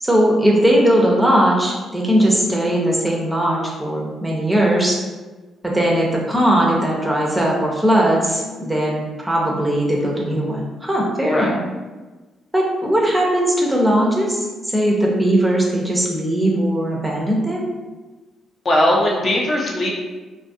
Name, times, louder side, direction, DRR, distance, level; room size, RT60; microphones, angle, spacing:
voice 1, 0.0-5.0 5.6-11.6 12.5-17.7, right 1 dB, 10° right, -2 dB, 0.5 m, -19 dB
voice 2, 18.6-19.9, left 1 dB, 40° left, -3 dB, 0.6 m, -18 dB
2.5 x 2.3 x 2.6 m, 1.2 s
cardioid pair, 90°, 0 cm